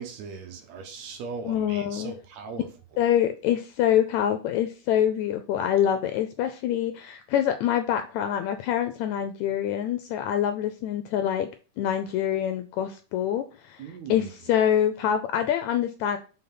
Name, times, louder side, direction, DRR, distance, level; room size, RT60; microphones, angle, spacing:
voice 1, 0.0-2.7 13.8-14.3, right 5 dB, 70° right, 1.9 m, -38 dB
voice 2, 1.4-2.1 3.0-11.5 11.8-16.2, left 10 dB, 80° left, 1.6 m, -25 dB
5.3 x 3.8 x 5.7 m
omnidirectional pair, 3.6 m